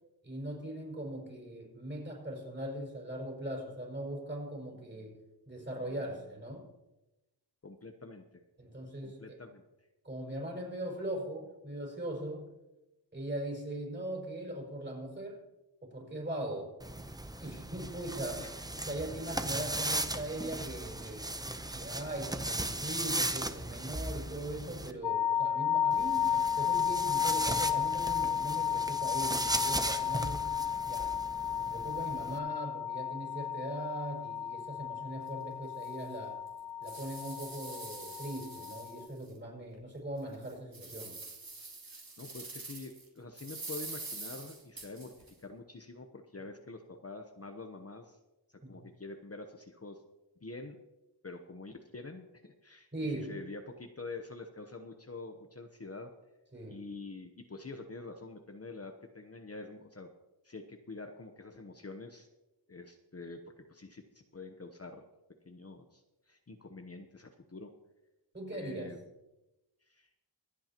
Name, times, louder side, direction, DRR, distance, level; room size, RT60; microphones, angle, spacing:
voice 1, 0.2-5.2 5.5-6.7 8.6-9.4 10.0-12.5 13.1-15.4 15.8-16.8 17.4-18.5 18.9-21.3 21.7-30.6 30.9-31.2 31.6-36.4 36.8-41.2 48.6-48.8 52.9-53.4 56.5-56.8 68.3-69.0, right 1 dB, 25° right, -2 dB, 5.3 m, -40 dB
voice 2, 7.6-8.4 9.0-9.6 18.4-18.9 21.0-21.6 41.8-48.2 48.5-50.0 50.4-50.8 51.2-56.1 56.7-60.1 60.4-62.3 62.7-65.0 65.4-67.7 68.5-69.0 69.8-70.1, left 3 dB, 35° left, 4 dB, 0.9 m, -46 dB
sound 1, 16.8-24.9 25.9-32.4, right 1 dB, 10° right, 0.7 m, -37 dB
sound 2, 25.0-39.1, left 8 dB, 65° left, 0.7 m, -33 dB
sound 3, 35.2-35.3 35.8-35.9 36.5-39.3 39.7-39.8 40.3-43.0 43.4-45.3, right 3 dB, 55° right, 4.0 m, -45 dB
25.5 x 8.7 x 2.9 m, 1.0 s
wide cardioid pair, 85°, 43 cm